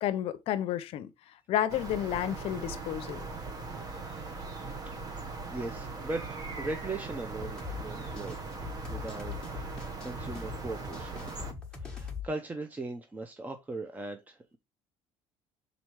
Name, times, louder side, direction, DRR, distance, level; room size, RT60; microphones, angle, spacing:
voice 1, 0.0-1.1 1.5-3.2, left 11 dB, 60° left, 0.8 m, -31 dB
sound 1, 1.7-11.5, right 3 dB, 35° right, 1.2 m, -40 dB
voice 2, 5.5-6.3 6.6-8.4 8.9-9.4 10.0-11.3 11.7-14.6, right 2 dB, 15° right, 0.7 m, -38 dB
sound 2, 7.4-12.3, left 5 dB, 5° left, 1.5 m, -41 dB
6.1 x 4.1 x 4.6 m
cardioid pair, 140°, 11 cm